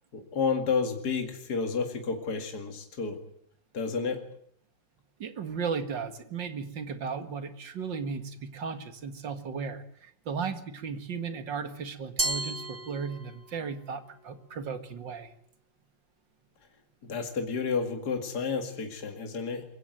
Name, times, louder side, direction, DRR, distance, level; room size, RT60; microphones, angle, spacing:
voice 1, 0.1-3.2 3.7-4.2 17.0-19.6, left 5 dB, 60° left, 5 dB, 2.7 m, -31 dB
voice 2, 5.2-15.3, right 5 dB, 75° right, 9 dB, 2.5 m, -35 dB
Glass, 12.2-13.6, right 2 dB, 10° right, 0.7 m, -33 dB
23.0 x 16.0 x 9.1 m, 0.67 s
omnidirectional pair, 2.0 m